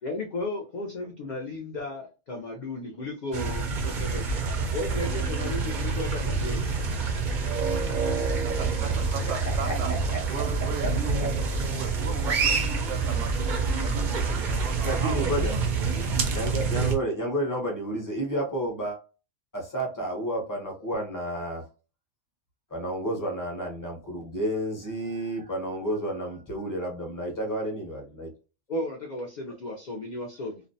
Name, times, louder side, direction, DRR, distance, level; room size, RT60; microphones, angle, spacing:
voice 1, 0.0-4.3 4.7-6.7 28.7-30.6, left 2 dB, 75° left, 0 dB, 0.4 m, -34 dB
sound 1, 3.3-16.9, right 4 dB, 60° right, 0.5 m, -27 dB
voice 2, 8.4-9.9 10.3-11.2 11.7-16.0, right 5 dB, 80° right, 6 dB, 0.9 m, -38 dB
voice 3, 9.4-10.4 14.8-15.5 16.3-19.0 19.5-21.7 22.7-28.3, right 1 dB, 20° left, 0 dB, 0.6 m, -31 dB
2.4 x 2.0 x 2.6 m, 0.33 s
omnidirectional pair, 1.3 m